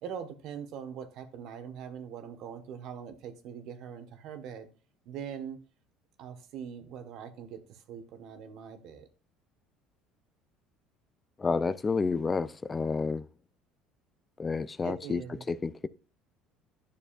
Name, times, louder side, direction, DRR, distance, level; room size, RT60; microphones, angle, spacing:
voice 1, 0.0-4.7 5.0-5.6 6.2-9.1 14.8-15.4, right 8 dB, 65° right, 1.4 m, -42 dB
voice 2, 11.4-13.2 14.4-15.2 15.5-15.9, left 4 dB, 25° left, 0.4 m, -30 dB
10.5 x 6.7 x 2.5 m
supercardioid pair, 95°, 0 cm